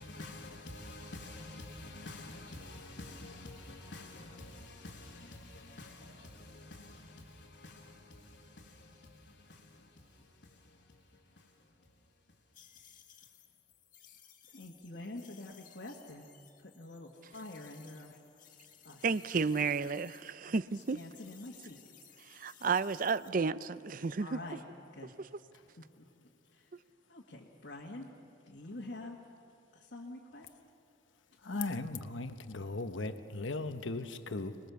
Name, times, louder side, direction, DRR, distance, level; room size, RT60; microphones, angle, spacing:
voice 1, 0.0-12.4 14.5-16.3 16.6-18.2 18.8-19.1 19.3-19.5 20.5-21.8 24.2-24.6 24.9-25.1 25.8-26.1 26.5-26.7 27.1-28.1 28.5-29.2 29.7-30.5, left 2 dB, 60° left, 1.7 m, -48 dB
sound 1, 12.5-20.3 20.6-23.3, left 9 dB, 45° left, 1.7 m, -60 dB
voice 2, 19.0-21.0 22.2-24.4 25.2-25.3, right 4 dB, 45° right, 0.5 m, -32 dB
voice 3, 31.4-34.6, left 2 dB, 80° left, 1.1 m, -37 dB
25.0 x 20.5 x 7.0 m
head